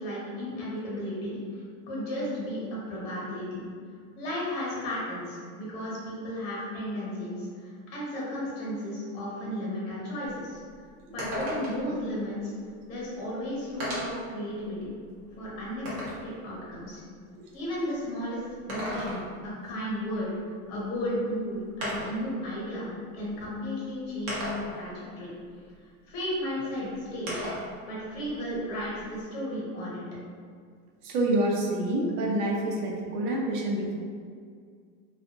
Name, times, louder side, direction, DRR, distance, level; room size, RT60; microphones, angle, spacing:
voice 1, 0.0-3.7 4.2-10.6 11.1-12.5 12.9-14.9 15.4-17.0 17.5-20.3 20.7-22.9 23.1-25.3 26.1-27.5 27.8-30.0, equal, 40° left, -6 dB, 1.0 m, -34 dB
sound 1, 10.3-10.4 10.7-10.8 11.2-11.9 13.0-13.1 13.8-14.3 14.9-16.3 18.5-19.5 21.0-21.1 21.8-22.3 23.3-23.4 24.3-24.9 27.3-27.7 28.1-29.2, equal, 45° right, 0.9 m, -35 dB
voice 2, 31.0-34.0, right 1 dB, 85° right, -2 dB, 0.8 m, -27 dB
2.6 x 2.4 x 2.5 m, 2.1 s
supercardioid pair, 165°, 45 cm